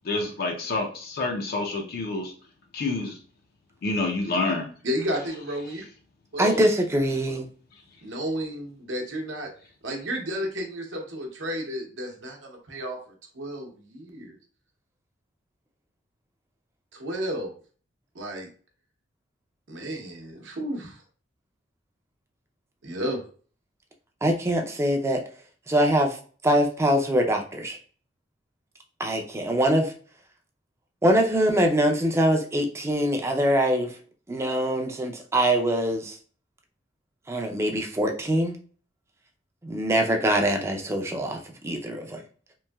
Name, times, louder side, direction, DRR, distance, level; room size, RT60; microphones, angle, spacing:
voice 1, 0.0-2.3 2.7-3.2 3.8-4.6, left 3 dB, 55° left, 1 dB, 0.4 m, -28 dB
voice 2, 4.8-5.8 6.3-6.6 8.0-9.5 9.8-13.0 13.3-14.3 16.9-17.5 18.1-18.5 19.7-21.0 22.8-23.2, equal, 70° right, 2 dB, 0.7 m, -32 dB
voice 3, 6.4-7.5 24.2-25.2 25.7-26.2 26.4-27.8 29.0-29.9 31.0-33.9 34.3-36.2 37.3-38.6 39.6-41.4 41.6-42.2, equal, 15° right, 3 dB, 0.4 m, -23 dB
3.0 x 2.6 x 2.2 m, 0.42 s
head